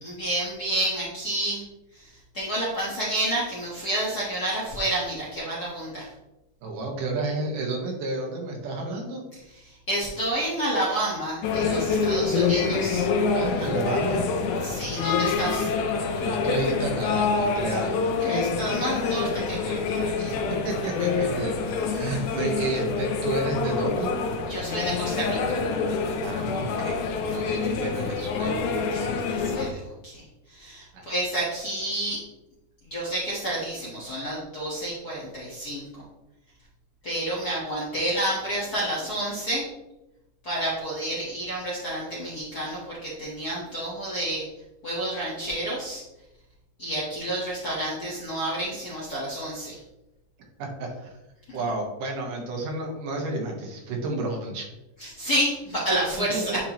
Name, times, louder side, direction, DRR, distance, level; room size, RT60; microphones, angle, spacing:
voice 1, 0.0-1.6 1.9-6.1 9.7-13.1 14.6-15.7 18.2-20.4 20.9-21.0 21.7-21.9 24.5-25.6 27.2-27.4 28.9-29.6 30.0-30.2 30.5-32.2 32.9-36.0 37.0-39.6 40.4-44.4 44.8-46.0 46.8-49.8 51.6-51.7 55.0-56.7, right 1 dB, 50° left, -8 dB, 1.2 m, -30 dB
voice 2, 6.6-9.2 13.3-14.3 16.1-17.9 20.6-21.5 21.9-24.1 26.2-27.0 27.3-28.6 30.9-31.0 50.6-51.1 51.5-54.7 56.3-56.6, right 2 dB, 85° right, 0 dB, 2.9 m, -30 dB
sound 1, 11.4-29.7, left 4 dB, 80° left, 2.1 m, -26 dB
9.2 x 4.5 x 3.0 m, 0.96 s
omnidirectional pair, 3.7 m